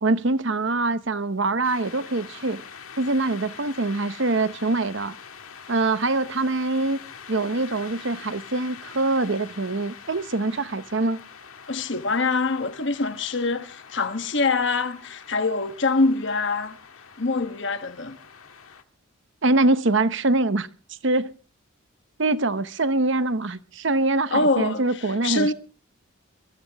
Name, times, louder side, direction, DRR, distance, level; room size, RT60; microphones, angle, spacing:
voice 1, 0.0-2.6 3.0-5.1 5.7-7.0 7.3-11.2 19.4-20.7 21.0-21.3 22.2-25.5, right 2 dB, 60° right, 0.9 m, -24 dB
sound 1, 1.6-18.8, left 7 dB, 90° left, 1.9 m, -44 dB
voice 2, 11.7-16.8 17.2-18.2 24.3-25.5, left 3 dB, 55° left, 1.2 m, -24 dB
23.0 x 15.0 x 3.5 m
head